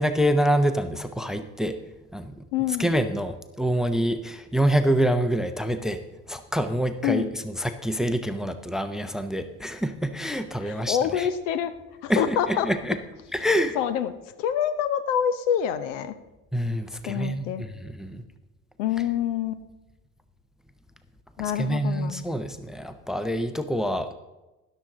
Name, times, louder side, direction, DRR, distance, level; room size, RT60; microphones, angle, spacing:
voice 1, 0.0-1.8 2.1-2.4 2.8-6.0 6.3-7.2 7.6-11.3 12.1-13.0 13.3-13.8 16.5-18.2 21.4-24.1, equal, ahead, 10 dB, 0.7 m, -26 dB
voice 2, 2.5-2.9 7.0-7.3 10.6-11.7 12.0-12.7 13.7-14.1 14.4-16.1 17.0-17.6 18.8-19.6 21.4-22.3, left 9 dB, 60° left, 13 dB, 0.9 m, -26 dB
13.0 x 11.0 x 3.8 m, 1.1 s
figure-of-eight pair, 60°, 41 cm